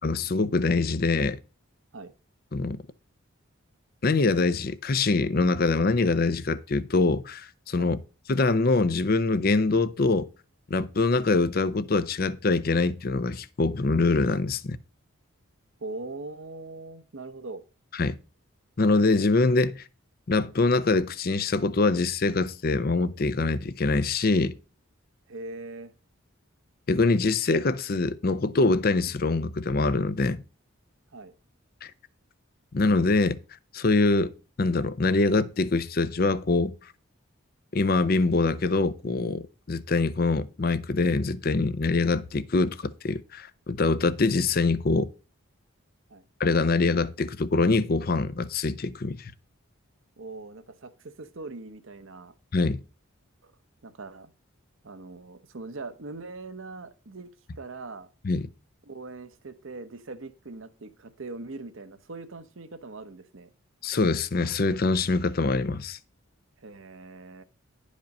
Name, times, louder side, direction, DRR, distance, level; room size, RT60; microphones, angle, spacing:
voice 1, 0.0-1.4 2.5-2.8 4.0-8.0 8.3-10.3 10.7-14.8 18.0-18.1 18.8-19.8 20.3-24.5 26.9-30.4 31.8-31.9 32.7-33.4 33.7-34.3 34.6-36.7 37.7-39.4 39.7-45.1 46.4-49.3 52.5-52.8 58.2-58.5 63.8-66.0, left 3 dB, 45° left, 0.5 m, -24 dB
voice 2, 15.8-17.6 25.3-25.9 31.1-31.3 46.1-46.2 50.2-52.3 53.4-53.5 53.8-54.3 54.8-58.1 58.9-63.5 66.6-67.4, right 3 dB, 65° right, 0.9 m, -41 dB
10.5 x 5.1 x 5.3 m
head